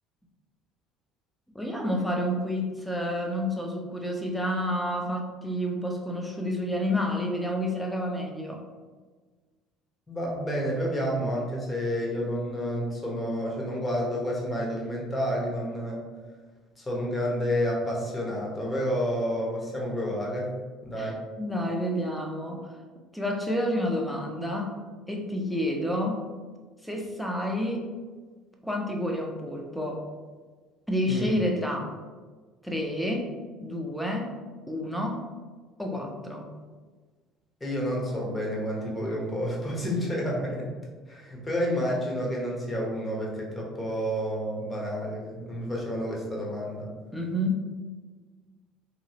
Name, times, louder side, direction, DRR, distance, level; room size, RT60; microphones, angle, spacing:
voice 1, 1.5-8.6 21.0-22.7 23.1-24.8 25.1-26.2 26.8-27.9 28.6-30.0 30.9-31.9 32.6-33.3 33.6-34.3 34.7-35.2 35.8-36.5 47.1-47.6, left 1 dB, 5° left, 0 dB, 0.7 m, -29 dB
voice 2, 10.1-16.0 16.8-20.5 20.8-21.2 31.1-31.3 37.6-40.7 41.1-46.9, equal, 20° left, -3 dB, 1.1 m, -30 dB
3.0 x 2.7 x 2.8 m, 1.4 s
hypercardioid pair, 65°, 0 cm